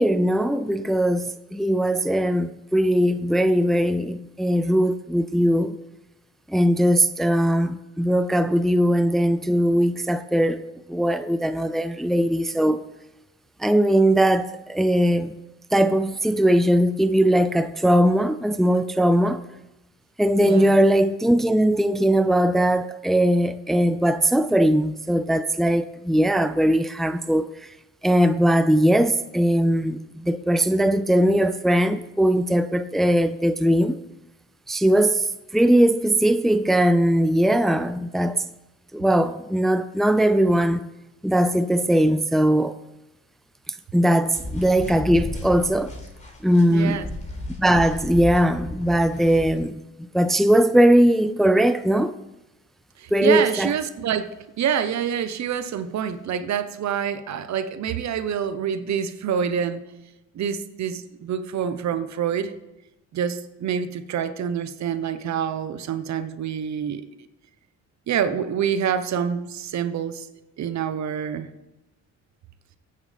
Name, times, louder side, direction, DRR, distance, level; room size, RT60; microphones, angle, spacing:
voice 1, 0.0-5.8 6.5-10.6 10.9-12.8 13.6-15.4 15.7-19.4 20.2-27.5 28.0-34.0 34.7-35.2 35.5-38.4 38.9-40.9 41.2-42.8 43.9-45.9 46.4-47.0 47.6-49.8 50.1-52.2 53.1-53.7, right 1 dB, ahead, 0.5 m, -20 dB
voice 2, 20.4-20.7 46.7-47.1 53.0-54.3 54.6-59.8 60.3-62.5 63.1-67.0 68.1-70.3 70.6-71.5, right 8 dB, 65° right, 1.1 m, -26 dB
sound 1, 44.3-49.6, left 1 dB, 25° left, 4.0 m, -34 dB
22.0 x 8.8 x 3.5 m
cardioid pair, 90°, 30 cm